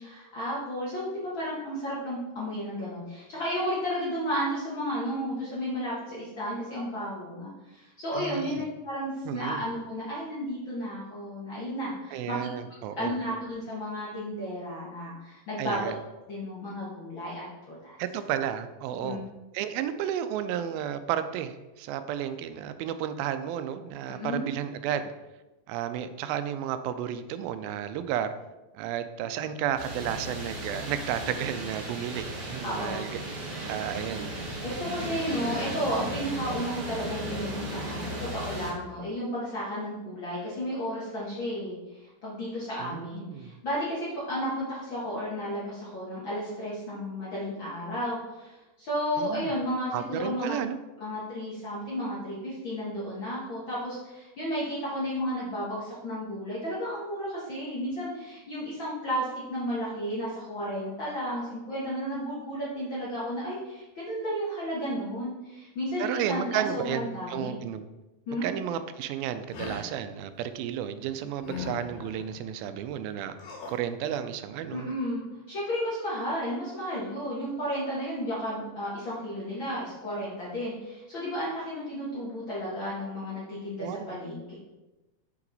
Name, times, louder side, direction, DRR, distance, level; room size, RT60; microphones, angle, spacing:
voice 1, 0.0-15.9 16.3-18.0 19.0-19.2 24.1-24.4 32.6-33.0 34.6-50.6 51.0-67.6 68.3-68.5 74.7-75.2 75.5-84.5, equal, 55° left, -7 dB, 1.4 m, -33 dB
voice 2, 8.2-8.6 9.3-9.6 12.1-13.2 15.6-16.0 18.0-19.2 19.5-25.1 25.7-28.3 28.7-33.2 33.7-34.3 42.8-43.5 49.2-49.5 49.9-50.8 66.0-67.9 68.4-73.4 73.7-74.9 83.8-84.1, right 9 dB, 85° right, 11 dB, 2.3 m, -32 dB
sound 1, 29.8-38.7, right 2 dB, 45° right, 1.4 m, -36 dB
sound 2, 69.5-69.9 71.4-72.3 73.4-73.8, left 5 dB, 80° left, 3.5 m, -39 dB
6.8 x 5.8 x 3.9 m, 1.1 s
omnidirectional pair, 4.2 m